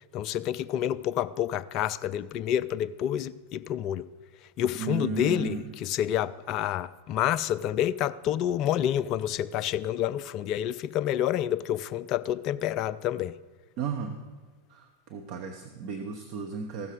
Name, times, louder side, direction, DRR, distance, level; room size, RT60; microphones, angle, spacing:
voice 1, 0.1-4.1 4.6-13.3, left 11 dB, 40° left, 0.3 m, -28 dB
voice 2, 4.8-5.7 13.8-14.2 14.7-16.9, right 5 dB, 45° right, 0.8 m, -34 dB
15.0 x 6.4 x 5.2 m
figure-of-eight pair, 90°, 0 cm